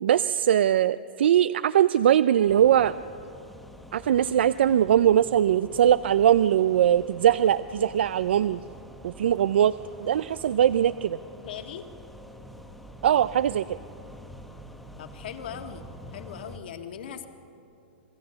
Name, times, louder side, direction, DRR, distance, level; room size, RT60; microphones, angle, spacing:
voice 1, 0.0-3.0 3.9-8.6 9.0-11.2 13.0-13.8, right 10 dB, 75° right, 16 dB, 0.4 m, -21 dB
sound 1, 2.5-16.6, equal, ahead, 0.8 m, -46 dB
voice 2, 11.4-11.9 15.0-15.8 16.1-17.3, left 9 dB, 60° left, 6 dB, 1.7 m, -39 dB
27.0 x 18.5 x 6.9 m, 2.6 s
supercardioid pair, 175°, 6 cm